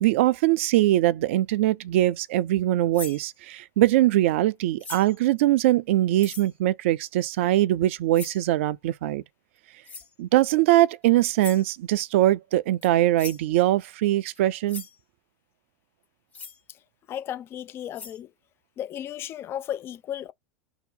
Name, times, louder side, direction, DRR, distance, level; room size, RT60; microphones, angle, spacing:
voice 1, 0.0-9.2 10.2-14.8, right 15 dB, 60° right, 0.4 m, -22 dB
sound 1, 2.9-3.2 4.8-5.2 6.2-6.5 8.1-8.5 9.8-10.1 11.4-11.7 12.8-12.9 13.2-13.5 14.3-14.4 14.7-15.0 16.3-16.6 17.5-17.6 17.9-18.2, left 5 dB, 20° left, 1.1 m, -40 dB
voice 2, 17.1-18.3 18.8-20.3, left 11 dB, 35° left, 0.4 m, -34 dB
2.8 x 2.0 x 3.8 m
hypercardioid pair, 90°, 7 cm